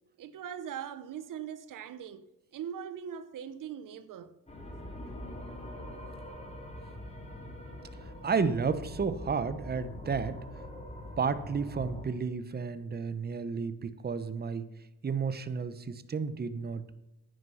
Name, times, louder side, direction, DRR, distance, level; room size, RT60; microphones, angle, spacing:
voice 1, 0.2-2.2 2.5-4.4, right 8 dB, 65° right, 0.9 m, -41 dB
sound 1, 4.5-12.1, left 1 dB, 20° left, 4.1 m, -43 dB
voice 2, 8.0-10.4 11.2-14.7 15.0-16.8, right 5 dB, 30° right, 0.9 m, -32 dB
10.5 x 9.8 x 5.6 m
cardioid pair, 85°, 34 cm